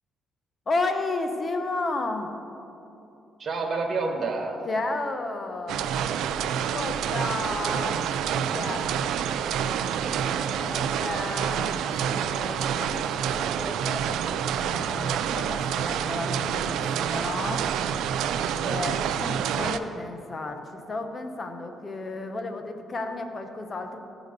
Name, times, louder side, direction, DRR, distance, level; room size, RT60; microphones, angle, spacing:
voice 1, 0.7-2.4 4.6-5.9 6.3-8.9 10.6-17.7 18.6-24.0, left 2 dB, 35° left, 6 dB, 1.0 m, -33 dB
voice 2, 3.4-4.6 10.0-10.2 18.5-18.8, right 3 dB, 45° right, 3 dB, 1.4 m, -31 dB
sound 1, 5.7-19.8, right 8 dB, 85° right, 0.4 m, -28 dB
15.5 x 5.1 x 5.2 m, 2.9 s
cardioid pair, 90°, 0 cm